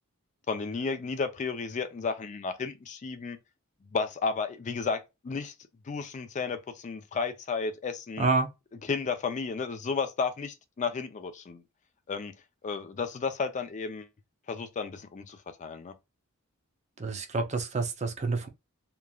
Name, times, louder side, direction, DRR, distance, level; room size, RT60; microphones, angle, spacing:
voice 1, 0.5-3.4 3.9-5.5 5.8-8.3 8.8-11.6 12.1-12.3 12.6-14.1 14.5-15.9, left 5 dB, 35° left, 0.4 m, -33 dB
voice 2, 17.0-18.5, right 3 dB, 30° right, 0.5 m, -28 dB
2.9 x 2.4 x 2.2 m
head